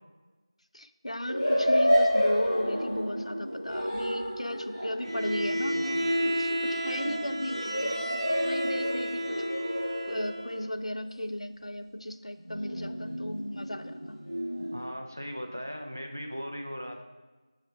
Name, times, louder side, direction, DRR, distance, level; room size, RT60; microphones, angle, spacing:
voice 1, 0.7-8.0 8.4-9.4 10.1-14.2, left 1 dB, 85° left, 10 dB, 0.4 m, -35 dB
sound 1, 1.2-10.7 12.4-14.8, equal, 15° left, 1.4 m, -30 dB
Bowed string instrument, 5.0-10.6, equal, 65° right, 1.1 m, -32 dB
voice 2, 14.7-17.0, equal, 30° right, 3 dB, 0.4 m, -38 dB
4.9 x 4.1 x 4.7 m, 1.2 s
figure-of-eight pair, 180°, 3 cm